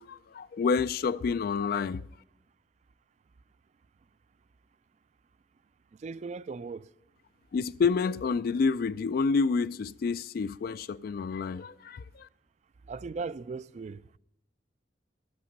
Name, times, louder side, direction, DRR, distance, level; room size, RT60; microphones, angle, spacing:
voice 1, 0.0-2.0 7.5-12.3, left 5 dB, 55° left, 0.3 m, -29 dB
voice 2, 6.0-6.9 12.9-14.0, right 4 dB, 40° right, 0.3 m, -37 dB
13.0 x 8.6 x 5.3 m
head